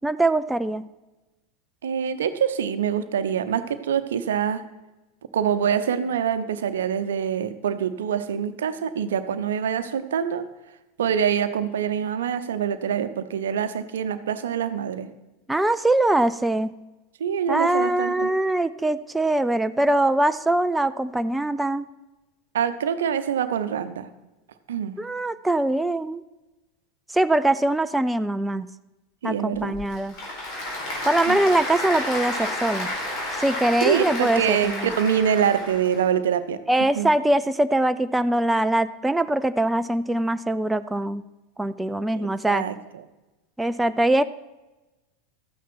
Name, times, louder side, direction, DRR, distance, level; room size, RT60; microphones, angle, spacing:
voice 1, 0.0-0.8 15.5-16.8 17.5-21.8 25.0-26.2 27.1-28.7 29.2-30.2 31.0-32.9 33.4-34.9 36.7-41.2 41.6-42.6 43.6-44.2, right 1 dB, 5° right, 12 dB, 0.4 m, -22 dB
voice 2, 1.8-4.6 5.3-10.4 11.0-15.1 17.2-18.3 22.5-24.1 24.7-25.0 29.2-29.7 31.3-31.4 33.8-37.1 42.1-43.0, right 8 dB, 70° right, 11 dB, 0.7 m, -25 dB
Applause / Crowd, 29.5-36.0, left 1 dB, 45° left, 4.2 m, -31 dB
13.0 x 9.1 x 4.6 m, 1.1 s
figure-of-eight pair, 85°, 0 cm